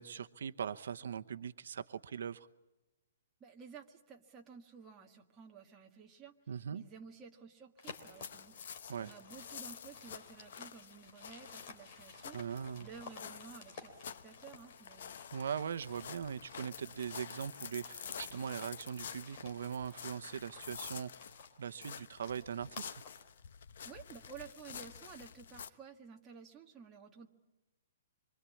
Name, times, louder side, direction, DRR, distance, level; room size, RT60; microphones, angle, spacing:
voice 1, 0.0-2.5 6.5-6.8 8.9-9.1 12.3-12.9 15.3-21.1 21.6-23.0, right 7 dB, 70° right, 10 dB, 0.9 m, -40 dB
voice 2, 3.4-6.3 6.7-12.4 12.8-15.2 23.8-27.3, right 6 dB, 10° right, 0 dB, 1.7 m, -53 dB
sound 1, 7.8-25.7, left 7 dB, 55° left, 1.1 m, -49 dB
sound 2, 7.8-16.2 16.5-23.3, left 5 dB, 35° left, 3.5 m, -55 dB
26.0 x 24.0 x 8.5 m, 1.0 s
hypercardioid pair, 175°, 0 cm